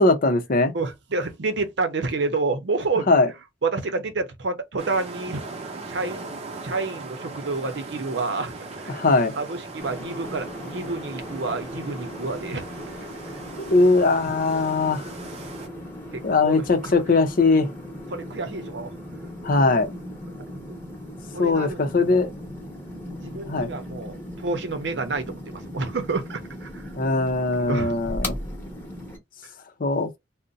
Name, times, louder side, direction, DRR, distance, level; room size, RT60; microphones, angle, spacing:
voice 1, 0.0-0.7 3.1-3.3 8.9-9.3 13.7-15.1 16.2-17.7 19.4-19.9 21.4-22.3 23.5-23.7 27.0-28.4 29.8-30.1, left 3 dB, 50° left, 0.6 m, -20 dB
voice 2, 0.7-3.1 3.6-5.4 5.9-6.4 6.6-8.5 8.8-9.0 9.3-12.7 16.1-16.9 18.1-18.9 21.3-22.3 23.2-24.2 24.4-26.8 27.7-27.9, right 3 dB, 70° right, 0.7 m, -29 dB
sound 1, 4.8-15.7, right 3 dB, 35° right, 0.7 m, -39 dB
sound 2, 9.8-29.2, equal, 10° left, 1.0 m, -38 dB
2.5 x 2.1 x 3.8 m
head